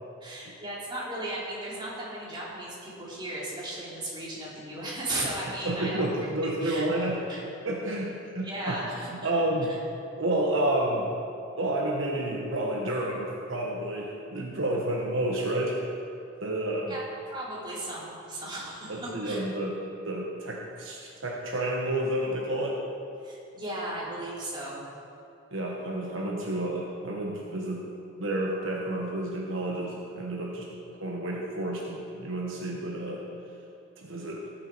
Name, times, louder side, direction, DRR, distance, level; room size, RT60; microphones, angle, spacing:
voice 1, 0.2-6.1 6.6-6.9 7.3-7.4 8.4-9.1 9.7-9.8 16.9-19.4 21.0-21.1 23.2-24.9, right 1 dB, 20° right, -7 dB, 3.2 m, -36 dB
voice 2, 5.6-7.2 7.6-8.8 9.1-9.7 10.2-11.1 11.6-15.8 16.4-16.9 18.9-19.7 20.1-22.8 25.5-27.9 28.2-30.7 31.0-33.2 34.0-34.4, right 1 dB, 70° right, -2 dB, 1.3 m, -30 dB
18.0 x 7.5 x 4.6 m, 2.6 s
head